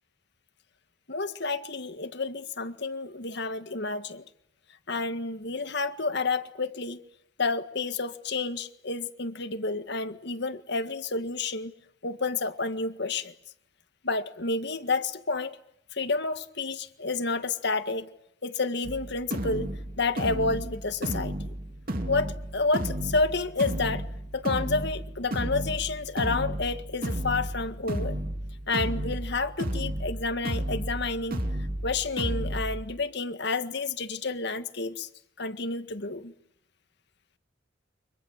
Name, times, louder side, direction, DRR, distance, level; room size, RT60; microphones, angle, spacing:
voice 1, 1.1-4.2 4.9-7.0 7.4-11.7 12.0-13.3 14.0-15.6 15.9-18.1 18.4-19.7 20.0-21.5 22.1-24.1 24.3-28.2 28.7-31.4 31.8-35.1 35.4-36.3, left 3 dB, 60° left, 1.7 m, -30 dB
sound 1, 18.8-32.8, right 1 dB, 50° right, 3.0 m, -33 dB
29.5 x 25.5 x 7.3 m
head